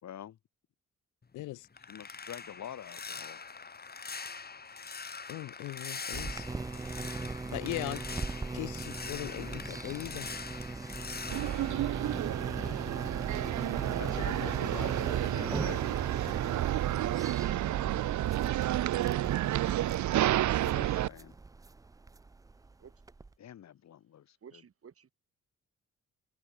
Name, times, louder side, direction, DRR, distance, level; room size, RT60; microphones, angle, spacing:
voice 1, 0.0-0.4 1.9-3.4 12.5-12.8 14.0-15.8 20.6-21.4 23.4-24.4, left 10 dB, 65° left, 3.0 m, -46 dB
sound 1, 1.2-12.9 13.2-15.9 16.2-16.5 16.9-17.1, left 5 dB, 30° left, 3.9 m, -44 dB
voice 2, 1.3-1.7 5.3-6.5 7.5-10.3, left 18 dB, 85° left, 0.7 m, -39 dB
sound 2, 6.1-23.3, right 3 dB, 10° right, 0.4 m, -40 dB
sound 3, 11.3-21.1, right 13 dB, 70° right, 1.1 m, -30 dB
voice 3, 24.4-25.1, right 7 dB, 50° right, 7.1 m, -53 dB
cardioid pair, 90°, 30 cm